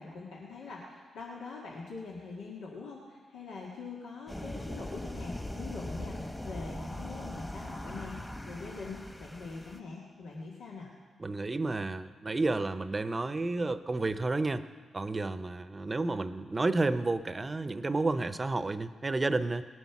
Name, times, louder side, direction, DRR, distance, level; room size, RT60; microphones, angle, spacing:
voice 1, 0.0-8.2 8.5-10.9, left 4 dB, 85° left, -4 dB, 1.9 m, -43 dB
sound 1, 4.3-9.8, left 1 dB, 15° left, 1.5 m, -40 dB
voice 2, 11.2-14.7 14.9-19.7, right 2 dB, 30° right, 13 dB, 0.8 m, -31 dB
19.0 x 9.2 x 6.0 m, 1.5 s
supercardioid pair, 50°, 0 cm